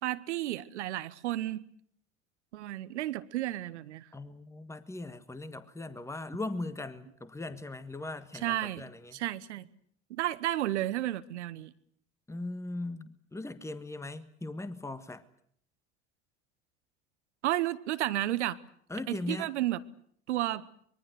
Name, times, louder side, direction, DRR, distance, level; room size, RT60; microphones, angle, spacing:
voice 1, 0.0-1.6 2.5-4.1 8.4-8.8 9.1-9.7 10.1-11.7 17.4-18.6 19.1-19.8 20.3-20.6, right 14 dB, 70° right, 1.1 m, -32 dB
voice 2, 4.1-9.2 12.3-15.2 18.9-19.5, left 2 dB, 10° left, 1.6 m, -39 dB
24.5 x 22.0 x 7.9 m
figure-of-eight pair, 70°, 36 cm